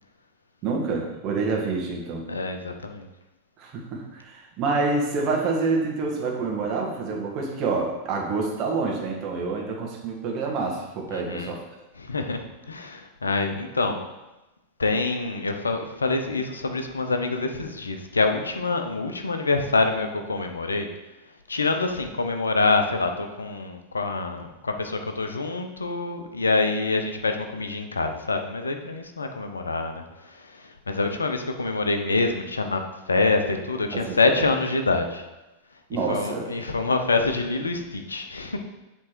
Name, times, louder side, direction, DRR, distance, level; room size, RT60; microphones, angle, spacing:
voice 1, 0.6-2.2 3.6-11.6 33.9-34.5 35.9-36.4, right 4 dB, 40° right, 0 dB, 1.4 m, -27 dB
voice 2, 2.3-3.1 11.1-11.5 12.0-14.1 14.8-20.9 21.5-35.2 36.1-38.6, left 3 dB, 75° left, 6 dB, 0.6 m, -26 dB
7.6 x 3.6 x 4.5 m, 1.0 s
figure-of-eight pair, 90°, 0 cm